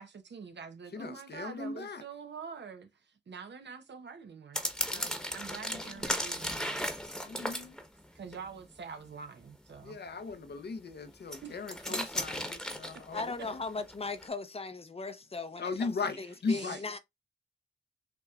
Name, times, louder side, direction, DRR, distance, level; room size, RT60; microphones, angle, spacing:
voice 1, 0.0-6.8 8.1-10.0 11.4-11.5 16.5-16.8, right 6 dB, 70° right, 1.0 m, -46 dB
voice 2, 0.9-2.0 4.9-5.1 5.5-5.8 7.2-7.8 9.8-13.6 15.6-16.8, left 4 dB, 65° left, 0.8 m, -38 dB
sound 1, 4.5-8.4 11.1-13.5 13.9-14.3, equal, 5° left, 1.1 m, -35 dB
voice 3, 13.1-17.0, left 3 dB, 30° left, 0.7 m, -38 dB
5.8 x 3.1 x 2.4 m
cardioid pair, 60°, 19 cm